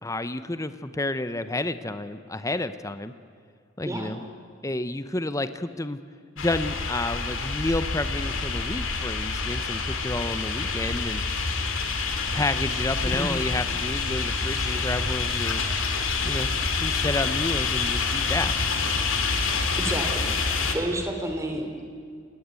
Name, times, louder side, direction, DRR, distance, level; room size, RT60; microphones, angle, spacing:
voice 1, 0.0-3.1 3.8-4.2 4.6-6.0 6.4-11.2 12.3-15.6 16.2-18.5, left 2 dB, 15° left, 11 dB, 0.8 m, -30 dB
voice 2, 3.8-4.2 13.0-13.3 19.8-20.3 20.6-21.8, right 1 dB, 15° right, 4 dB, 3.3 m, -30 dB
sound 1, 6.4-20.8, left 4 dB, 70° left, 2.7 m, -27 dB
28.0 x 19.5 x 8.3 m, 2.2 s
head